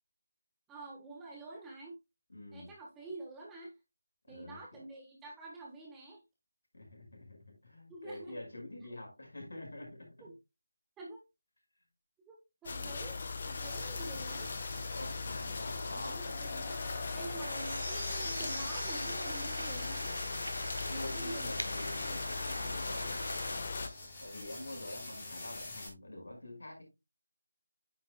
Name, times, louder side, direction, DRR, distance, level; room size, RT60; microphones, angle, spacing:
voice 1, 0.7-1.9 2.5-3.7 4.3-6.2 7.9-8.4 10.2-10.3 11.0-11.2 12.2-14.5 15.6-16.8 17.1-20.1 20.9-21.6, right 2 dB, 5° right, -1 dB, 1.2 m, -47 dB
voice 2, 2.3-2.7 4.3-4.6 6.7-10.3 14.9-16.3 20.9-23.2 24.2-26.8, left 1 dB, 60° left, 2 dB, 5.1 m, -46 dB
sound 1, 12.6-23.9, left 4 dB, 35° left, 1.2 m, -39 dB
sound 2, 13.6-25.9, left 2 dB, 20° left, 3.6 m, -45 dB
sound 3, 17.4-23.6, right 1 dB, 80° right, 1.7 m, -42 dB
9.4 x 7.8 x 2.2 m, 0.24 s
figure-of-eight pair, 160°, 0 cm